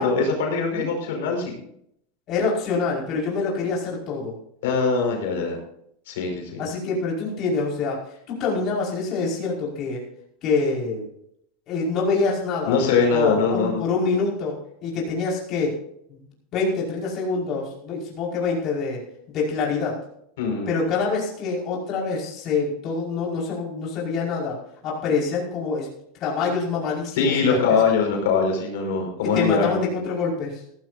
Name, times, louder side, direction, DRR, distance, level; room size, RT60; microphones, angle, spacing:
voice 1, 0.0-1.6 4.6-5.6 6.1-6.7 12.7-13.8 20.4-20.7 27.2-29.8, left 5 dB, 80° left, 1 dB, 5.3 m, -22 dB
voice 2, 2.3-4.3 6.6-8.0 8.3-10.0 10.4-11.1 11.7-12.8 13.1-15.8 16.1-16.2 16.5-19.0 19.3-20.0 20.7-24.6 24.8-25.9 26.2-27.6 29.3-30.6, left 4 dB, 40° left, -3 dB, 5.2 m, -25 dB
16.0 x 15.0 x 2.7 m, 0.71 s
supercardioid pair, 140°, 0 cm